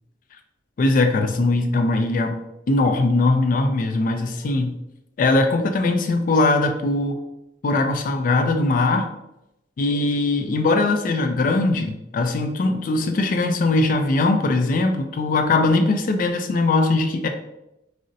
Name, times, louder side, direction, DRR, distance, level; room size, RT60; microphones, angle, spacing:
voice 1, 0.8-2.4 2.7-4.8 5.2-7.2 7.6-9.1 9.8-17.3, left 2 dB, 45° left, 5 dB, 0.3 m, -20 dB
2.5 x 2.0 x 3.8 m, 0.89 s
head